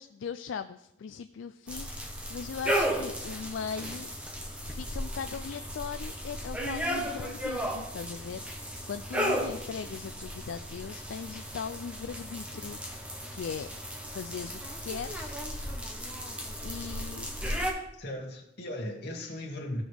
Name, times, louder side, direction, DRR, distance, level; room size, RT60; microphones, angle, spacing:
voice 1, 0.0-4.1 4.6-13.7 14.0-15.4 16.6-17.3, left 6 dB, 75° left, 10 dB, 0.4 m, -39 dB
Mexican federal police formation on rain, 1.7-17.7, equal, 5° right, 1.1 m, -35 dB
voice 2, 17.9-19.8, left 1 dB, 55° left, -1 dB, 2.2 m, -37 dB
15.0 x 6.2 x 3.4 m, 0.77 s
head